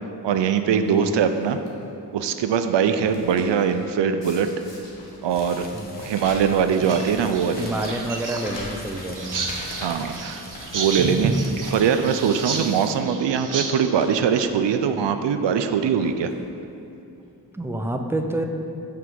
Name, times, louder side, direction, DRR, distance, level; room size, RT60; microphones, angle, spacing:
voice 1, 0.2-1.6 2.1-4.5 5.2-5.7 6.0-7.7 9.8-10.4 10.7-11.3 11.7-16.3, right 7 dB, 80° right, 8 dB, 0.5 m, -22 dB
sound 1, 1.2-1.7 2.2-2.6 2.8-3.8 4.2-11.3 11.7-11.8 12.2-12.6 13.4-13.5 13.8-14.2 14.5-14.6 15.5-15.6 16.0-16.5 17.2-17.3 17.5-17.6, left 1 dB, 85° left, 1.4 m, -42 dB
sound 2, 5.2-12.9, left 1 dB, 20° left, 0.9 m, -43 dB
voice 2, 5.7-6.1 6.8-7.0 7.6-9.5 10.3-10.5 17.5-18.4, right 1 dB, 5° right, 4 dB, 0.6 m, -29 dB
sound 3, 6.7-13.9, right 4 dB, 45° right, 0.8 m, -30 dB
5.8 x 4.7 x 6.2 m, 2.8 s
cardioid pair, 55°, 43 cm